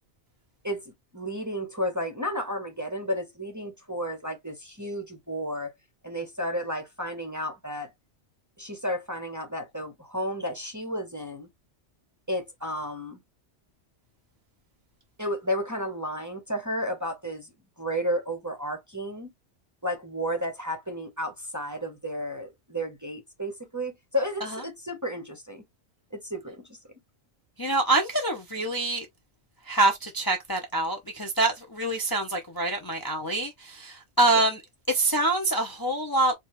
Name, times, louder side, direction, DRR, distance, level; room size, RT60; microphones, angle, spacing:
voice 1, 0.6-5.7 6.0-7.9 8.6-11.5 12.3-13.2 15.2-17.5 17.8-19.3 19.8-25.6 26.1-26.6 34.3-34.4, equal, 20° right, 0.8 m, -32 dB
voice 2, 27.6-29.1 29.7-34.6 34.9-36.3, right 2 dB, 25° left, 0.6 m, -25 dB
4.6 x 2.3 x 3.1 m
omnidirectional pair, 1.2 m